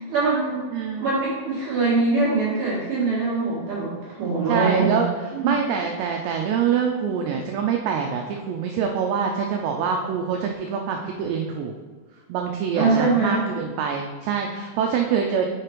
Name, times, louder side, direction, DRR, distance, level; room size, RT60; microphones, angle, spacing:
voice 1, 0.0-0.6 1.0-5.0 5.3-5.6 12.7-13.5, right 3 dB, 55° right, -8 dB, 2.5 m, -23 dB
voice 2, 0.7-1.1 4.5-5.1 5.4-11.7 12.3-15.5, right 7 dB, 85° right, 2 dB, 2.5 m, -25 dB
8.1 x 4.9 x 4.5 m, 1.5 s
omnidirectional pair, 5.5 m